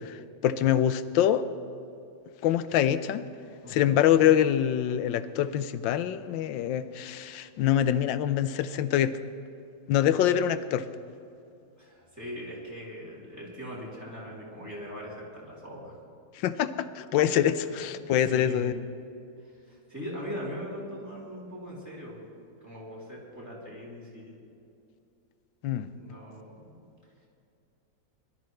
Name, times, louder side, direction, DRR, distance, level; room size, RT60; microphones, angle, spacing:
voice 1, 0.0-1.4 2.4-3.2 3.7-9.2 9.9-10.9 16.3-18.8 25.6-25.9, left 10 dB, 90° left, 13 dB, 1.3 m, -25 dB
voice 2, 3.6-3.9 11.8-15.9 17.7-18.6 19.4-22.3 22.6-24.4 25.9-26.7, equal, 10° right, -6 dB, 3.3 m, -41 dB
22.0 x 12.5 x 3.2 m, 2.6 s
omnidirectional pair, 2.0 m